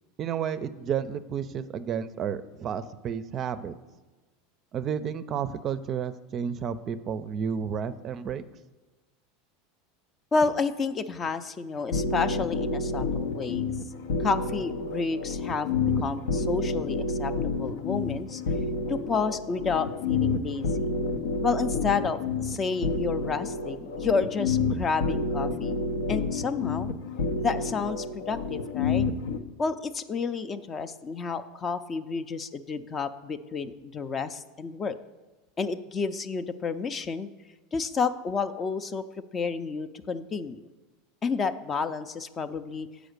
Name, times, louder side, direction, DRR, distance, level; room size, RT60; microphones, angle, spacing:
voice 1, 0.2-3.7 4.7-8.4, right 7 dB, 35° right, 13 dB, 0.4 m, -31 dB
voice 2, 10.3-13.7 14.2-15.7 16.0-17.3 17.6-18.4 18.9-20.7 21.4-25.8 26.1-26.9 27.4-29.1 29.6-35.0 35.6-37.3 37.7-39.0 39.3-40.6 41.2-42.9, left 5 dB, 25° left, 12 dB, 0.4 m, -30 dB
sound 1, 11.9-29.4, left 4 dB, 85° left, 0.6 m, -29 dB
7.9 x 5.0 x 6.5 m, 1.2 s
supercardioid pair, 120°, 0 cm